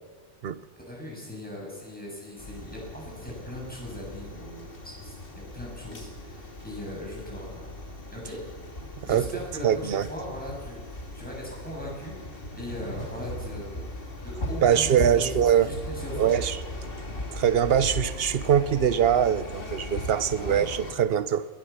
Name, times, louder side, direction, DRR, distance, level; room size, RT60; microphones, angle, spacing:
voice 1, 0.9-5.2 5.5-7.7 8.1-8.4 9.1-16.3 20.3-20.7, left 1 dB, 5° left, 7.8 m, -39 dB
sound 1, 2.4-21.0, left 1 dB, 50° left, 2.4 m, -38 dB
voice 2, 9.6-10.1 14.6-15.7 16.2-16.6 17.3-21.5, right 9 dB, 60° right, 0.9 m, -23 dB
22.5 x 18.0 x 7.3 m
omnidirectional pair, 1.2 m